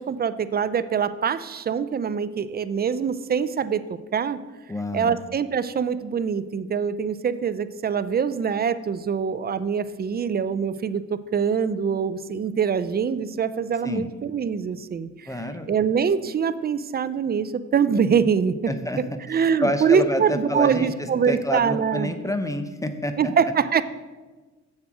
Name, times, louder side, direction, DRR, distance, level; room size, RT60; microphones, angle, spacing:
voice 1, 0.0-4.4 4.9-15.4 15.7-18.5 19.3-22.1 23.2-23.8, right 6 dB, 30° right, 14 dB, 0.5 m, -24 dB
voice 2, 4.7-5.2 13.8-14.1 15.3-15.7 18.7-19.0 19.6-20.9 21.3-23.3, left 1 dB, 10° left, 8 dB, 0.8 m, -28 dB
7.7 x 7.2 x 6.1 m, 1.3 s
cardioid pair, 90°, 30 cm